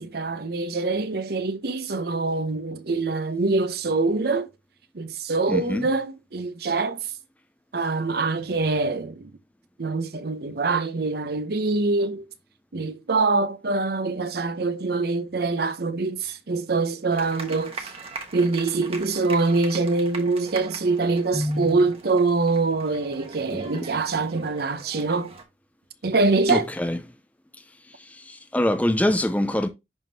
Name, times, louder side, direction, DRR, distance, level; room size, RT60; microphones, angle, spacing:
voice 1, 0.0-4.5 4.9-7.0 7.7-9.3 9.8-12.2 12.7-17.9 18.3-25.3 26.0-26.7, right 3 dB, 60° right, 0.7 m, -24 dB
voice 2, 5.5-5.9 21.3-21.8 23.5-23.8 26.5-27.0 28.0-29.7, left 1 dB, 10° left, 0.5 m, -25 dB
sound 1, 17.1-25.4, right 3 dB, 35° right, 1.2 m, -41 dB
10.5 x 3.6 x 2.8 m
head